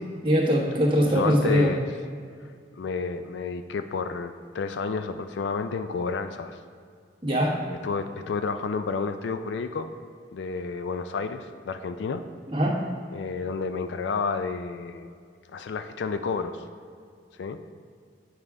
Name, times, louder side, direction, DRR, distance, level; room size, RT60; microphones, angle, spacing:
voice 1, 0.2-1.7 7.2-7.5 12.5-12.8, equal, 30° right, -4 dB, 1.3 m, -22 dB
voice 2, 1.1-1.8 2.7-6.6 7.8-9.9 10.3-12.2 13.1-15.1 15.5-16.6 17.4-17.6, left 4 dB, 75° left, 9 dB, 0.4 m, -30 dB
8.8 x 4.8 x 3.6 m, 2.2 s
head